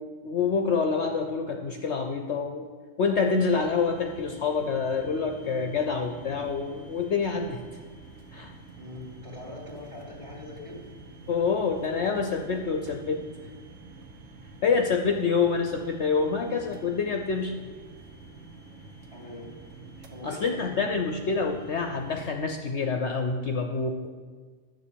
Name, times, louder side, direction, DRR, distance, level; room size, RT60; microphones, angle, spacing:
voice 1, 0.0-2.7 3.0-7.6 8.3-8.5 11.3-13.3 14.6-17.6 20.2-24.1, left 5 dB, 60° left, 5 dB, 0.9 m, -27 dB
sound 1, 3.2-22.3, right 2 dB, 75° right, 1.6 m, -47 dB
voice 2, 8.8-10.8 19.1-19.5 20.1-20.9, left 1 dB, 20° right, -3 dB, 2.5 m, -42 dB
11.0 x 7.2 x 6.9 m, 1.5 s
omnidirectional pair, 1.5 m